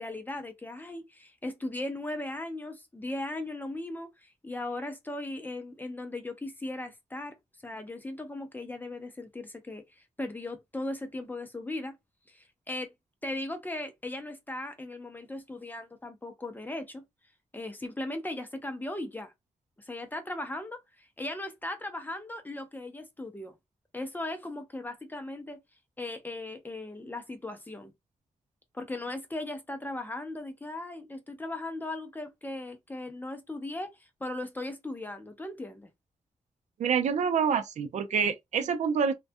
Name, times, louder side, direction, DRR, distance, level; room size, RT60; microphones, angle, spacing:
voice 1, 0.0-7.4 7.6-11.9 12.3-12.9 13.2-17.0 17.5-19.3 19.8-23.6 23.9-25.6 26.0-27.9 28.7-35.9, left 2 dB, 15° left, 0.5 m, -38 dB
voice 2, 36.8-39.1, right 6 dB, 70° right, 0.4 m, -27 dB
2.4 x 2.2 x 2.5 m
wide cardioid pair, 125°, 12 cm